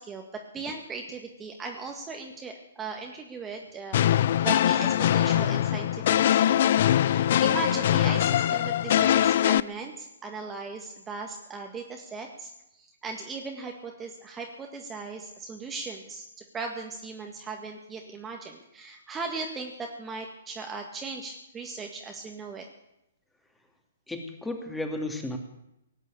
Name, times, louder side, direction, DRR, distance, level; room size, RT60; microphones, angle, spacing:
voice 1, 0.0-16.3 16.5-22.7, right 4 dB, 15° right, 2 dB, 1.8 m, -38 dB
sound 1, 3.9-9.6, left 11 dB, 50° left, 0.5 m, -22 dB
voice 2, 24.1-25.4, left 2 dB, 5° left, 4 dB, 2.4 m, -33 dB
18.0 x 9.5 x 8.5 m, 0.85 s
figure-of-eight pair, 120°, 0 cm